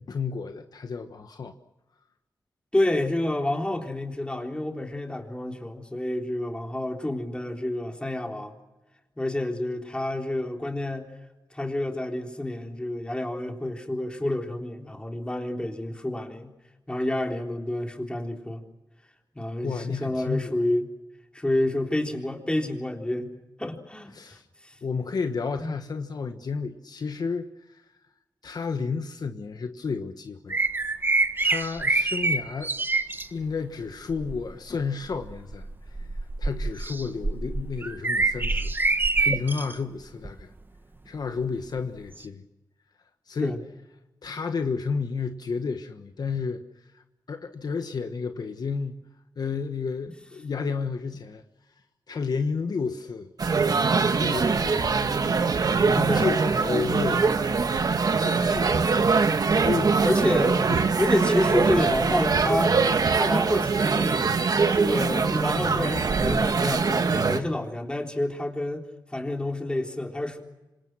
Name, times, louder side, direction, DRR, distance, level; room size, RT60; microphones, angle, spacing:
voice 1, 0.0-1.6 19.6-20.5 24.1-24.4 24.8-27.8 28.4-30.6 31.4-32.7 33.3-35.7 36.0-36.1 36.4-40.5 41.1-42.5 43.3-43.6 44.2-46.6 46.9-49.0 49.4-51.4 52.1-53.3 54.2-55.2 55.9-57.4 58.2-58.9 59.6-60.0 60.7-60.8, left 5 dB, 65° left, 1.3 m, -31 dB
voice 2, 2.7-8.5 9.2-11.1 11.5-16.5 16.9-18.6 19.4-20.9 21.3-23.3 23.6-24.4 24.6-24.8 25.6-25.8 43.4-43.6 56.1-56.3 60.0-60.6 61.0-62.8 63.1-64.2 64.7-70.4, left 1 dB, 15° left, 3.7 m, -29 dB
sound 1, 30.5-33.3 34.1-34.5 35.1-39.7 40.2-40.4 42.2-42.3, right 3 dB, 30° right, 1.5 m, -26 dB
sound 2, 53.4-67.4, right 4 dB, 60° right, 1.6 m, -23 dB
26.5 x 26.5 x 6.3 m
wide cardioid pair, 100°, 7 cm